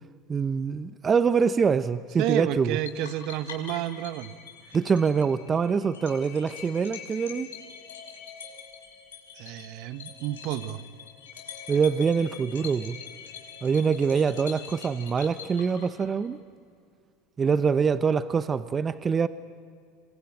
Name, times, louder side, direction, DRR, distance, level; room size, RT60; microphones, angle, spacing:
voice 1, 0.3-2.8 4.7-7.5 11.7-13.0 13.6-16.4 17.4-19.3, right 6 dB, 25° right, 0.8 m, -24 dB
voice 2, 2.2-4.3 9.4-10.8, right 13 dB, 60° right, 1.2 m, -30 dB
sound 1, 2.9-16.3, left 7 dB, 85° left, 5.7 m, -44 dB
27.5 x 23.0 x 9.1 m
hypercardioid pair, 85°, 0 cm